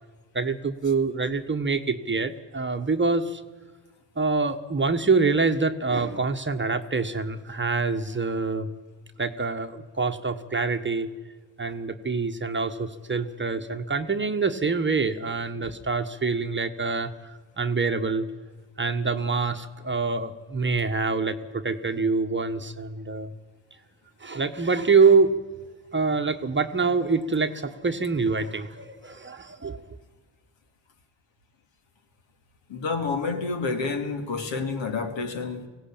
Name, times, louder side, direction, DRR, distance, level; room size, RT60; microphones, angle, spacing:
voice 1, 0.3-3.4 4.2-8.7 9.2-11.1 11.6-17.3 17.6-18.2 18.8-23.3 24.2-25.3 25.9-30.0, right 4 dB, 25° right, 1.3 m, -25 dB
voice 2, 32.7-35.7, left 4 dB, 65° left, 2.5 m, -29 dB
19.5 x 16.5 x 8.8 m
cardioid pair, 80°, 49 cm